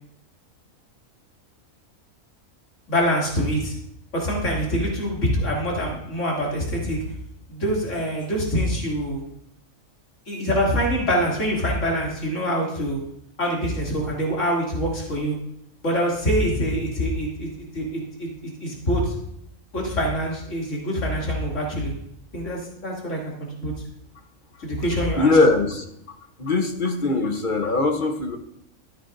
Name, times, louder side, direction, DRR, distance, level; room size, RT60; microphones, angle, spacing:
voice 1, 2.9-3.7 4.1-7.0 7.5-9.2 10.3-13.0 13.4-15.3 15.8-19.1 19.7-21.9 22.3-23.7 24.6-25.3, equal, 65° left, -4 dB, 3.0 m, -25 dB
voice 2, 25.2-25.8 26.4-28.4, left 3 dB, 40° left, 4 dB, 1.0 m, -21 dB
13.5 x 9.8 x 2.6 m, 0.76 s
omnidirectional pair, 1.4 m